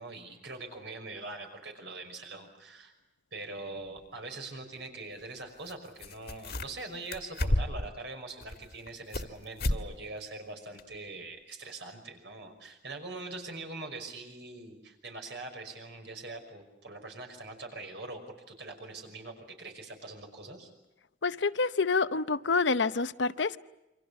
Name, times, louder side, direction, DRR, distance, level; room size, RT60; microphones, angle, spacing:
voice 1, 0.0-2.9 3.3-18.2 18.5-20.7, right 2 dB, 65° right, 5.7 m, -43 dB
sound 1, 4.0-4.1 5.7-5.8 6.0-6.8 7.1-7.9 8.4-9.3 9.6-9.8 10.2-10.3 10.8-10.9, left 1 dB, 55° left, 1.8 m, -31 dB
voice 2, 21.2-23.6, left 4 dB, 70° left, 0.8 m, -27 dB
28.0 x 25.0 x 7.1 m
head